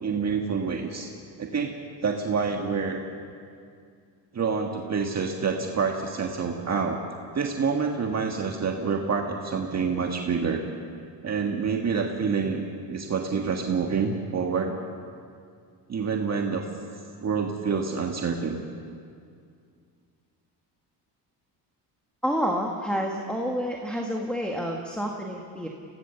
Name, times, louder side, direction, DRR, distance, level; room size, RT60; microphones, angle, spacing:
voice 1, 0.0-1.1 1.4-1.7 2.0-3.0 4.3-7.0 7.3-10.6 11.2-14.8 15.9-16.7 17.2-18.6, right 5 dB, 35° right, 2 dB, 1.6 m, -27 dB
voice 2, 22.2-25.7, equal, ahead, -1 dB, 1.7 m, -29 dB
23.5 x 17.0 x 6.9 m, 2.3 s
cardioid pair, 105°, 43 cm